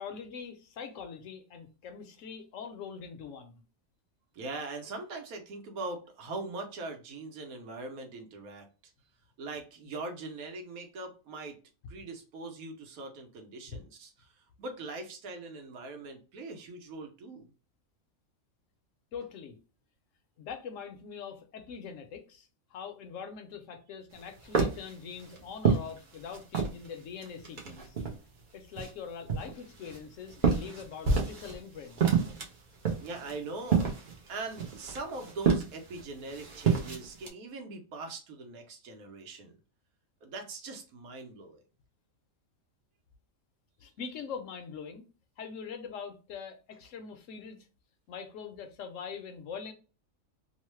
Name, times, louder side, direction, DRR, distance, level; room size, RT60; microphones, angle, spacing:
voice 1, 0.0-3.6 19.1-19.6 20.4-28.0 28.5-32.0 43.8-45.0 45.4-47.6 48.1-49.7, left 6 dB, 70° left, 0.9 m, -43 dB
voice 2, 4.3-8.7 9.4-11.6 11.9-17.5 33.0-33.9 34.2-39.6 40.2-41.6, right 3 dB, 90° right, 1.2 m, -41 dB
sound 1, 24.1-26.9 27.2-28.3 28.8-31.6 31.9-37.3, right 5 dB, 50° right, 0.6 m, -29 dB
3.0 x 2.0 x 3.1 m
omnidirectional pair, 1.5 m